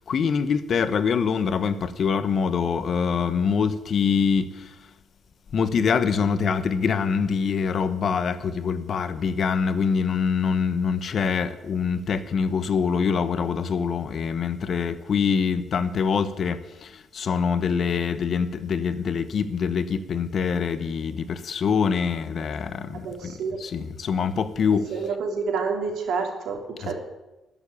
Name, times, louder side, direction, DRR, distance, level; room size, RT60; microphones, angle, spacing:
voice 1, 0.1-4.7 5.5-24.9 26.8-26.9, left 6 dB, 55° left, 1.1 m, -24 dB
voice 2, 22.9-23.6 24.9-26.9, right 5 dB, 75° right, 3.2 m, -28 dB
13.5 x 7.3 x 10.0 m
cardioid pair, 90°, 0 cm